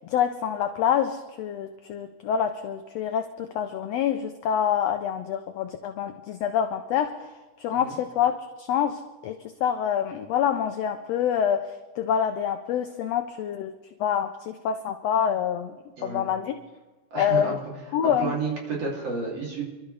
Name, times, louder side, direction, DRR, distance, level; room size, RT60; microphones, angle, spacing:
voice 1, 0.1-7.3 7.6-13.7 14.0-15.8 16.0-16.5 17.2-17.6 17.9-18.3, left 8 dB, 80° left, 7 dB, 1.5 m, -26 dB
voice 2, 17.1-17.6 18.0-19.6, right 4 dB, 50° right, -2 dB, 3.8 m, -31 dB
28.0 x 12.5 x 3.3 m, 1.2 s
omnidirectional pair, 3.6 m